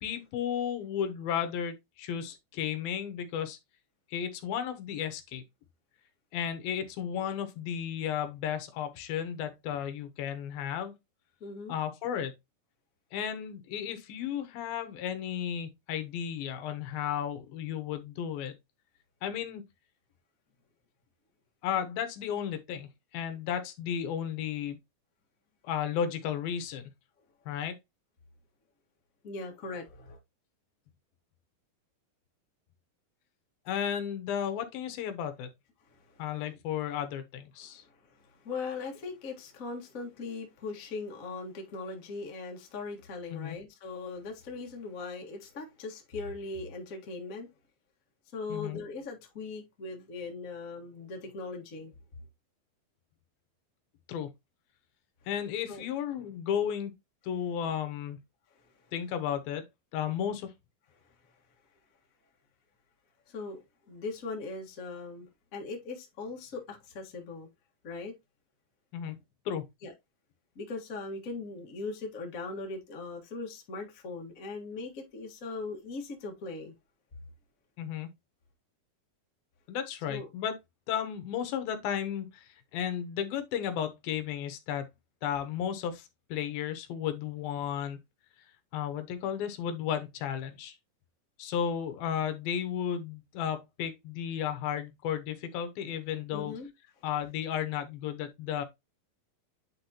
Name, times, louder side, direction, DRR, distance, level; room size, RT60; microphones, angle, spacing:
voice 1, 0.0-3.6 4.1-5.4 6.3-10.9 11.7-12.3 13.1-18.5 19.2-19.6 21.6-24.8 25.6-26.8 27.5-27.8 33.7-35.5 36.2-37.8 43.3-43.6 48.5-48.8 54.1-54.3 55.3-56.9 57.2-58.2 58.9-59.6 59.9-60.5 68.9-69.2 69.5-69.6 77.8-78.1 79.7-80.5 80.9-84.9 85.2-88.0 88.7-90.8 91.4-96.5 97.0-98.6, left 9 dB, 80° left, 2.8 m, -34 dB
voice 2, 11.4-11.8 29.2-30.2 35.9-36.2 37.6-47.5 48.3-51.9 55.7-55.8 58.6-58.7 63.3-67.5 67.8-68.1 69.8-69.9 70.5-76.7 80.1-80.3 96.3-96.7, left 3 dB, 50° left, 0.9 m, -40 dB
9.6 x 4.1 x 2.8 m
omnidirectional pair, 4.2 m